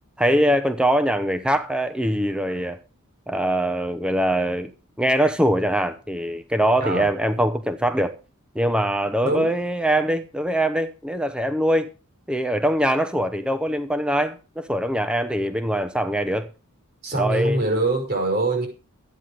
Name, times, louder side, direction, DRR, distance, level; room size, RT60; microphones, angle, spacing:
voice 1, 0.2-2.8 3.3-4.7 5.0-8.1 8.5-11.9 12.3-16.5 17.1-17.6, right 1 dB, 5° right, 0.8 m, -22 dB
voice 2, 9.2-9.5 17.0-18.7, right 2 dB, 50° right, 5.4 m, -23 dB
13.5 x 9.4 x 5.0 m
head